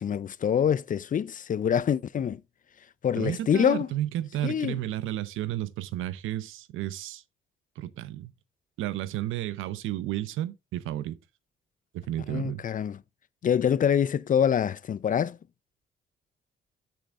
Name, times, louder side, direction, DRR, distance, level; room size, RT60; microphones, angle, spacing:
voice 1, 0.0-2.4 3.0-3.9 4.4-4.8 12.3-13.0 13.4-15.4, left 8 dB, 40° left, 0.5 m, -25 dB
voice 2, 3.2-7.2 7.8-8.3 8.8-11.2 11.9-12.6, right 13 dB, 90° right, 0.8 m, -32 dB
7.6 x 7.1 x 3.7 m
cardioid pair, 90°, 20 cm